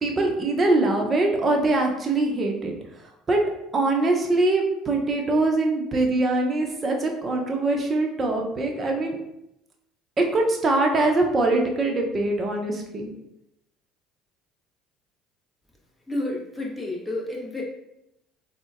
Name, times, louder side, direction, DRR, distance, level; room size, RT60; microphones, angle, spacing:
voice 1, 0.0-2.8 3.3-3.4 3.7-9.2 10.2-13.1, right 2 dB, 35° right, 1 dB, 0.6 m, -23 dB
voice 2, 16.1-17.6, left 2 dB, 10° left, -3 dB, 0.9 m, -30 dB
3.8 x 2.1 x 2.4 m, 0.84 s
supercardioid pair, 75°, 0 cm